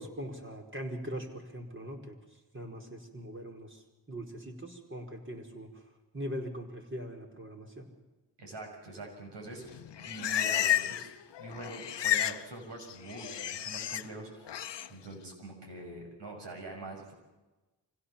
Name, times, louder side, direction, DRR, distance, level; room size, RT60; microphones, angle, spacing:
voice 1, 0.0-2.2 2.5-3.8 4.1-5.7 6.1-7.9, equal, 30° right, 2 dB, 4.9 m, -41 dB
voice 2, 8.4-9.6 10.0-11.1 11.4-14.5 14.9-17.1, right 2 dB, 80° right, 2 dB, 6.9 m, -44 dB
Livestock farm animals working animals, 9.7-11.1 11.4-12.4 12.7-14.0 14.5-14.9, left 11 dB, 85° left, 0.9 m, -31 dB
26.0 x 16.5 x 7.2 m, 1.1 s
cardioid pair, 65°, 42 cm